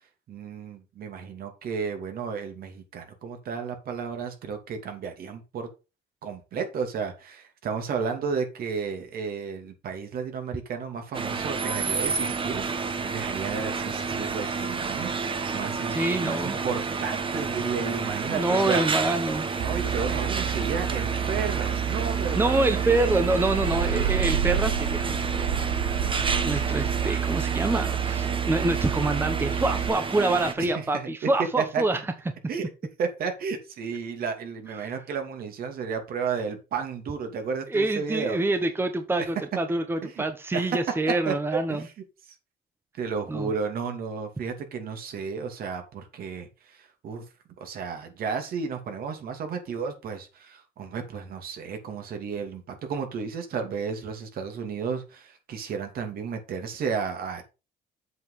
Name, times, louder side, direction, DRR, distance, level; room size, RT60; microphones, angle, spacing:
voice 1, 0.3-5.7 6.2-18.8 19.5-22.9 23.7-24.2 30.6-31.1 31.6-31.8 32.5-32.7 33.0-38.4 39.2-39.3 40.0-40.2 40.5-40.7 41.1-41.3 41.7-41.9 42.9-47.2 47.6-57.4, right 6 dB, 60° right, 5 dB, 2.7 m, -33 dB
sound 1, 11.1-30.5, right 4 dB, 30° right, 1.3 m, -30 dB
voice 2, 15.9-16.6 18.3-19.5 22.3-25.6 25.9-32.0 34.8-34.9 37.7-41.8 43.3-43.5, right 2 dB, 15° right, 8 dB, 1.1 m, -26 dB
sound 2, 19.6-29.9, right 9 dB, 90° right, 1.6 m, -29 dB
7.8 x 5.4 x 5.7 m, 0.29 s
cardioid pair, 110°, 17 cm